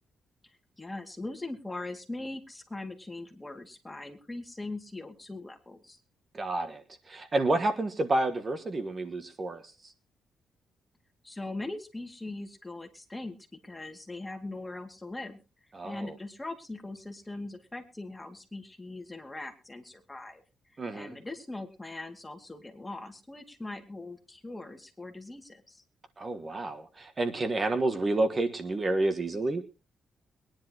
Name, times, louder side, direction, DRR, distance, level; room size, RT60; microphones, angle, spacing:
voice 1, 0.8-6.0 11.2-15.4 15.8-20.4 20.9-25.8, left 2 dB, 15° left, 5 dB, 2.2 m, -41 dB
voice 2, 6.3-9.6 15.7-16.1 20.8-21.1 26.2-29.6, right 2 dB, 30° right, 9 dB, 1.4 m, -29 dB
22.5 x 10.5 x 2.9 m, 0.31 s
cardioid pair, 105°, 0 cm